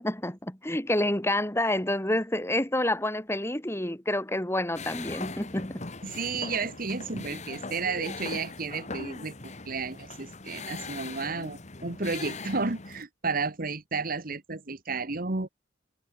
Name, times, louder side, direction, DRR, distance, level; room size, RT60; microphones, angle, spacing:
voice 1, 0.0-5.9, left 1 dB, 15° left, 4.6 m, -28 dB
sound 1, 4.7-13.0, left 3 dB, 40° left, 2.5 m, -40 dB
voice 2, 6.0-9.3 9.6-15.5, right 4 dB, 55° right, 1.6 m, -32 dB
head